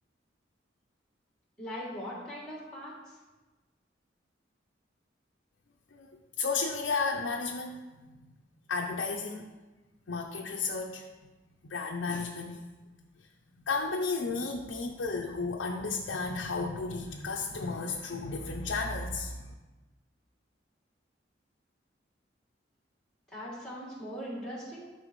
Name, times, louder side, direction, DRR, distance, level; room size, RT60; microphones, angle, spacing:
voice 1, 1.6-2.9 23.3-24.9, equal, 5° left, -6 dB, 2.5 m, -40 dB
voice 2, 5.9-8.3 8.7-9.5 10.1-11.3 11.6-12.6 13.7-19.5, left 4 dB, 80° left, 0 dB, 0.6 m, -33 dB
12.0 x 4.7 x 3.1 m, 1.2 s
head